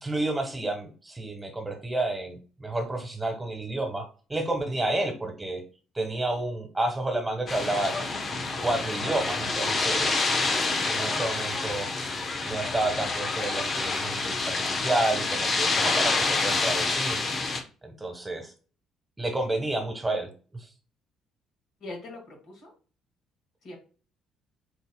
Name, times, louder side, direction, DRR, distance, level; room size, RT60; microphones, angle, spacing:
voice 1, 0.0-5.6 5.9-7.9 8.6-11.9 12.4-17.2 17.8-18.5 19.2-20.7, right 2 dB, 15° right, 3 dB, 1.4 m, -30 dB
sound 1, 7.5-17.6, left 3 dB, 40° left, 1.0 m, -27 dB
voice 2, 21.8-22.7 23.6-23.8, left 1 dB, 60° left, 0 dB, 2.0 m, -43 dB
8.0 x 2.7 x 2.3 m, 0.37 s
figure-of-eight pair, 50°, 0 cm